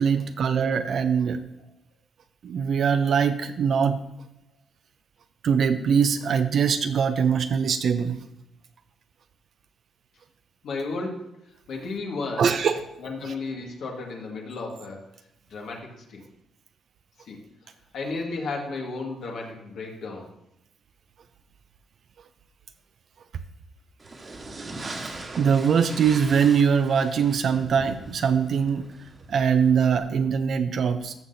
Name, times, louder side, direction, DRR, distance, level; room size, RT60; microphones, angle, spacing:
voice 1, 0.0-1.4 2.4-4.0 5.4-8.2 12.4-12.9 25.4-28.9 29.3-31.1, right 7 dB, 60° right, 9 dB, 0.5 m, -22 dB
voice 2, 10.6-11.4 11.7-12.5 13.0-15.0 15.5-16.2 17.2-17.4 17.9-20.3, left 3 dB, 75° left, -1 dB, 1.8 m, -33 dB
sound 1, 24.0-30.0, right 2 dB, 35° right, 1.5 m, -40 dB
14.5 x 5.9 x 2.8 m, 0.83 s
cardioid pair, 90°, 0 cm